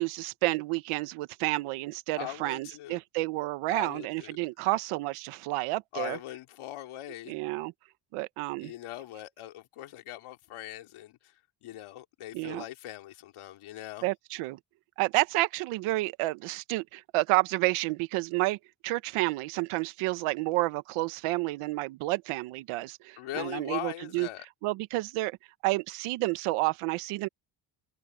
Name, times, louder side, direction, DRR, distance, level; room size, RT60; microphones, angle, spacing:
voice 1, 0.0-6.2 7.3-7.7 8.1-8.7 12.3-12.6 14.0-14.6 15.0-18.6 18.8-24.3 24.6-25.4 25.6-27.3, right 20 dB, 85° right, 1.2 m, -30 dB
voice 2, 2.2-3.0 3.7-4.4 5.9-7.4 8.6-11.3 11.6-14.1 23.2-24.4, left 14 dB, 75° left, 3.3 m, -40 dB
supercardioid pair, 70°, 50 cm